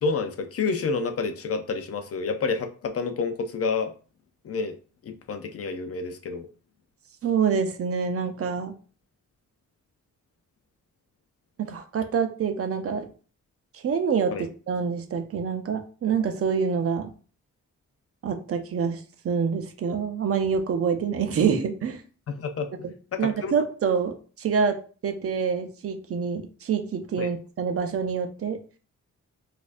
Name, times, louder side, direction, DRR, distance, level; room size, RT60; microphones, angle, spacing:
voice 1, 0.0-3.9 4.4-4.8 5.0-6.5 14.3-14.5 22.3-22.7 23.1-23.6 27.2-27.3, left 4 dB, 50° left, 7 dB, 0.5 m, -29 dB
voice 2, 7.2-8.7 11.7-13.0 13.7-17.1 18.2-22.0 22.8-22.9 23.2-24.8 25.0-28.6, right 6 dB, 50° right, 7 dB, 0.6 m, -26 dB
4.1 x 2.6 x 2.5 m, 0.39 s
wide cardioid pair, 120°, 30 cm